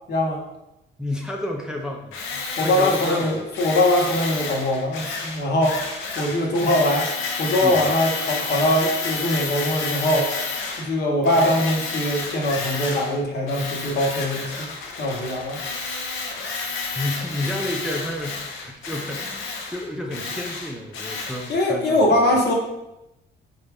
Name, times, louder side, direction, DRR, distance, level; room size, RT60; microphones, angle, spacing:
voice 1, 0.1-0.4 2.6-5.8 6.2-7.0 7.4-10.3 10.8-14.7 15.0-15.6 21.5-22.5, left 1 dB, 60° left, 0 dB, 0.9 m, -22 dB
voice 2, 1.0-3.5 6.3-6.8 7.6-7.9 17.0-22.2, left 1 dB, 5° right, 1 dB, 0.4 m, -31 dB
Tools, 2.1-10.9 11.2-13.2 13.5-21.6, left 4 dB, 90° left, 0.6 m, -30 dB
3.8 x 2.3 x 3.3 m, 0.90 s
cardioid pair, 90°, 20 cm